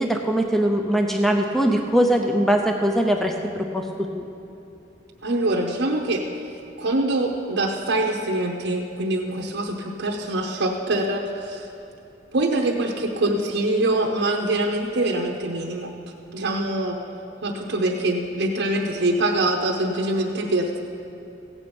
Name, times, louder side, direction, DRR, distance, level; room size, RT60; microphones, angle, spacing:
voice 1, 0.0-3.9 4.1-4.3, right 1 dB, ahead, 2 dB, 0.5 m, -21 dB
voice 2, 5.2-6.2 6.8-11.7 12.3-15.9 16.3-17.0 17.4-20.8, right 1 dB, 75° right, -1 dB, 0.8 m, -24 dB
15.5 x 8.5 x 5.2 m, 2.7 s
head